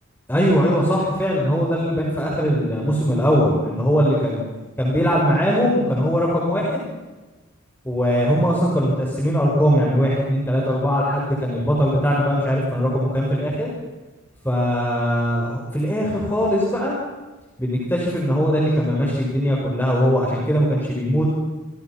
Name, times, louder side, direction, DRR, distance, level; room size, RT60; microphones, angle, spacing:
voice 1, 0.3-4.4 4.8-6.9 7.8-13.7 14.4-16.9 17.6-21.3, equal, 10° left, -3 dB, 5.2 m, -20 dB
28.5 x 26.5 x 5.9 m, 1.2 s
head